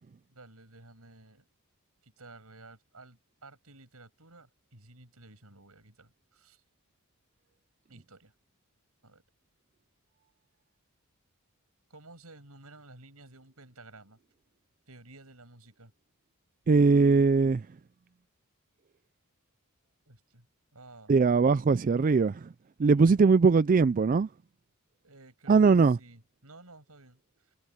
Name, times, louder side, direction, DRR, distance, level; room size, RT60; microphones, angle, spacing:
voice 1, 0.3-1.5 2.0-6.6 7.9-8.3 9.0-9.2 11.9-14.2 14.9-15.9 20.1-20.5 20.7-21.2 25.0-27.6, right 2 dB, 85° right, 6.9 m, -53 dB
voice 2, 16.7-17.7 21.1-22.5 22.8-24.3 25.5-26.0, right 4 dB, 40° right, 0.3 m, -21 dB
head